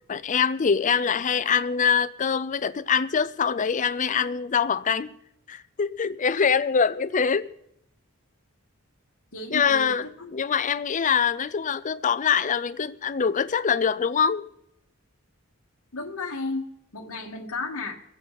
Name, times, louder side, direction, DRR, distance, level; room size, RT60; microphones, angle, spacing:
voice 1, 0.1-5.1 5.5-7.5 9.5-10.1 10.3-14.5, left 6 dB, 35° left, 0.5 m, -24 dB
voice 2, 9.3-10.3 15.9-16.7 16.9-18.0, left 3 dB, 75° left, 1.6 m, -33 dB
25.0 x 8.4 x 4.0 m
head